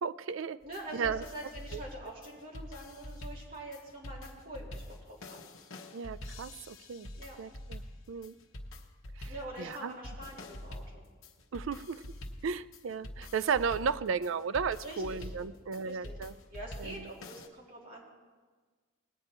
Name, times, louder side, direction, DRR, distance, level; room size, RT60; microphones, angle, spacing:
voice 1, 0.0-0.6 0.9-1.2 1.7-1.8 5.9-7.1 7.4-7.8 8.1-8.3 9.2-9.3 9.6-10.0 11.5-12.0 12.4-16.3 16.8-17.1, right 6 dB, 65° right, 16 dB, 0.4 m, -34 dB
sound 1, 0.6-17.5, left 1 dB, 75° left, 1.1 m, -46 dB
voice 2, 0.6-5.5 7.2-7.4 9.2-11.0 14.8-15.3 15.8-16.2 16.5-18.0, right 1 dB, 45° right, -4 dB, 3.3 m, -45 dB
19.5 x 8.9 x 4.4 m, 1.4 s
head